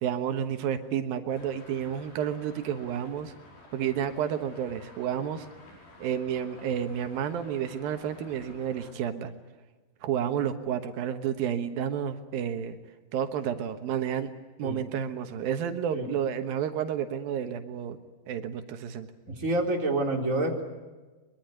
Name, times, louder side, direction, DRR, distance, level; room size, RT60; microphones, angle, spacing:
voice 1, 0.0-3.3 3.7-5.5 6.0-9.3 10.0-12.8 13.1-14.3 14.6-18.0 18.3-19.1, right 9 dB, 80° right, 7 dB, 3.0 m, -30 dB
Traffic noise roadway noise, 1.3-8.9, left 2 dB, 85° left, 7.2 m, -52 dB
voice 2, 19.3-20.6, right 2 dB, 20° right, 1 dB, 3.9 m, -28 dB
24.0 x 23.0 x 9.4 m, 1.3 s
omnidirectional pair, 4.1 m